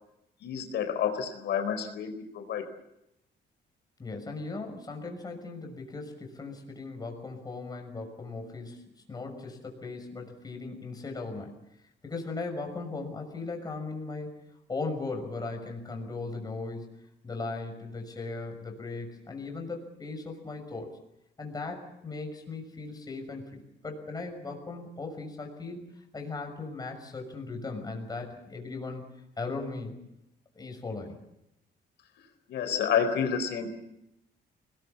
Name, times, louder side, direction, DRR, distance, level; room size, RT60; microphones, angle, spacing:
voice 1, 0.4-2.7 32.5-33.7, left 7 dB, 75° left, 8 dB, 4.4 m, -29 dB
voice 2, 4.0-8.8 9.1-11.6 12.0-14.3 14.7-16.9 17.2-20.9 21.4-29.1 29.4-29.9 30.5-31.2, left 3 dB, 20° left, 3 dB, 6.3 m, -38 dB
29.0 x 21.0 x 7.3 m, 0.86 s
cardioid pair, 160°, 18 cm